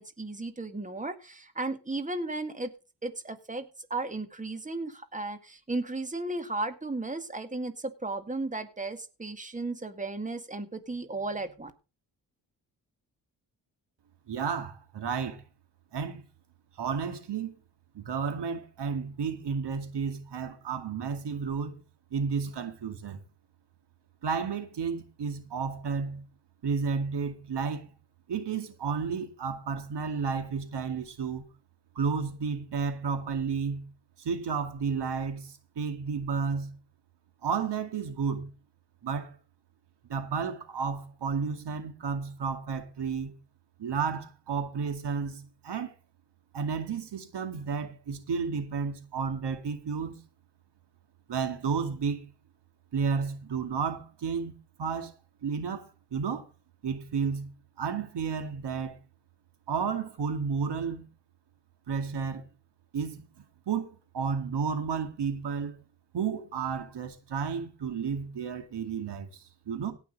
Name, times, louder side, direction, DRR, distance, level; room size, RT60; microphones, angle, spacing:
voice 1, 0.0-2.7 3.0-3.7 3.9-11.7, right 2 dB, 20° right, 2.0 m, -35 dB
voice 2, 14.3-15.4 15.9-16.2 16.8-17.5 17.9-21.8 22.1-23.2 24.2-26.2 26.6-27.9 28.3-31.5 32.0-33.9 34.2-36.8 37.4-38.5 39.0-39.4 40.1-43.3 43.8-45.9 46.5-50.2 51.3-52.3 52.9-54.5 54.8-55.1 55.4-56.5 56.8-57.5 57.8-59.0 59.7-61.1 61.9-62.4 62.9-63.2 63.7-65.7 66.1-69.9, right 6 dB, 75° right, 2.3 m, -32 dB
17.0 x 6.0 x 5.3 m
cardioid pair, 55°, 42 cm